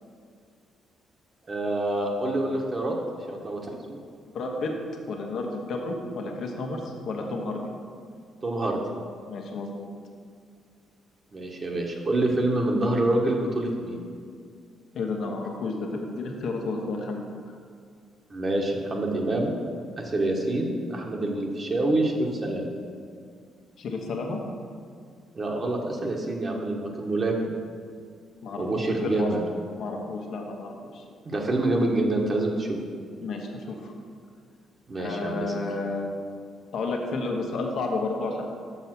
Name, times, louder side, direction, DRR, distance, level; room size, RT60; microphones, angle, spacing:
voice 1, 1.5-2.9 3.3-3.6 3.9-4.0 8.4-8.8 11.3-14.0 18.3-19.5 20.0-22.7 25.3-27.3 28.6-29.4 31.2-32.8 34.9-35.5, right 2 dB, 35° right, -1 dB, 1.2 m, -26 dB
voice 2, 4.3-4.7 5.1-7.6 9.3-9.9 14.9-17.2 23.8-24.4 28.4-28.6 29.0-29.3 29.8-31.0 33.2-33.9 35.0-36.1 36.7-38.4, left 3 dB, 70° left, 1 dB, 1.2 m, -31 dB
6.9 x 5.6 x 6.0 m, 2.2 s
cardioid pair, 90°, 0 cm